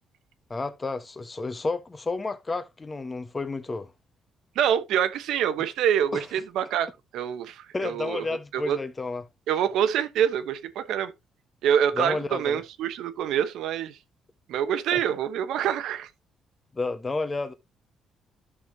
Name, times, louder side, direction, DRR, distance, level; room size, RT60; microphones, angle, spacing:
voice 1, 0.5-3.9 6.1-6.2 7.7-9.2 12.0-12.6 14.9-15.0 16.7-17.5, left 3 dB, 25° left, 1.3 m, -31 dB
voice 2, 4.5-8.3 8.5-8.8 9.5-11.1 11.6-14.0 14.5-16.1, right 9 dB, 85° right, 1.0 m, -26 dB
11.0 x 6.2 x 2.8 m
cardioid pair, 90°, 0 cm